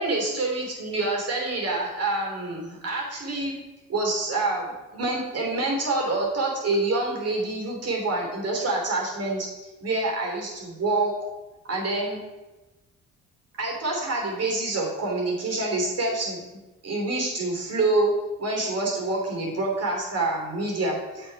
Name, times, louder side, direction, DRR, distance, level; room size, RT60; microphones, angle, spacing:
voice 1, 0.0-3.6 3.9-4.7 4.9-9.5 9.8-11.3 11.6-12.2 13.6-18.1 18.4-21.3, right 2 dB, 55° right, -1 dB, 3.2 m, -27 dB
8.0 x 6.1 x 4.7 m, 1.1 s
cardioid pair, 90°, 30 cm